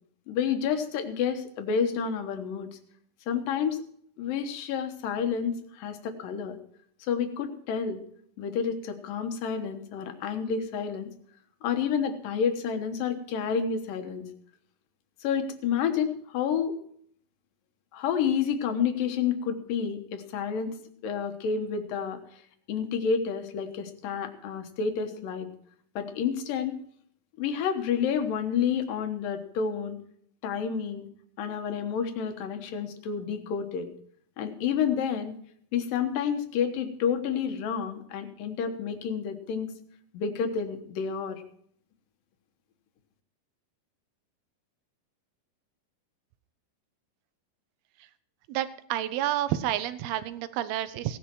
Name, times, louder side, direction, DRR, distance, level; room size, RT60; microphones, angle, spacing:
voice 1, 0.3-2.7 3.3-3.8 4.2-6.6 7.1-8.0 8.4-11.1 11.6-14.3 15.2-16.8 17.9-20.7 21.0-22.2 22.7-25.5 26.0-26.8 27.4-30.0 30.4-31.1 31.4-33.9 34.4-35.4 35.7-39.7 40.1-41.4, left 7 dB, 70° left, 6 dB, 2.8 m, -29 dB
voice 2, 48.5-51.2, right 12 dB, 85° right, 13 dB, 2.7 m, -29 dB
17.0 x 10.5 x 4.6 m, 0.64 s
omnidirectional pair, 4.4 m